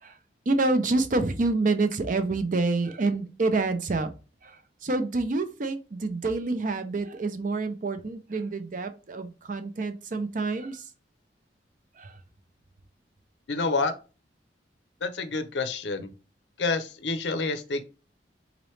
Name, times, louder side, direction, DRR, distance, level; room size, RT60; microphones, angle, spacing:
voice 1, 0.5-4.1 4.8-10.8 12.0-12.1, right 3 dB, 45° right, 0.5 m, -27 dB
voice 2, 13.5-13.9 15.0-16.1 16.6-17.9, left 3 dB, 80° left, 0.6 m, -28 dB
4.0 x 2.9 x 3.1 m
head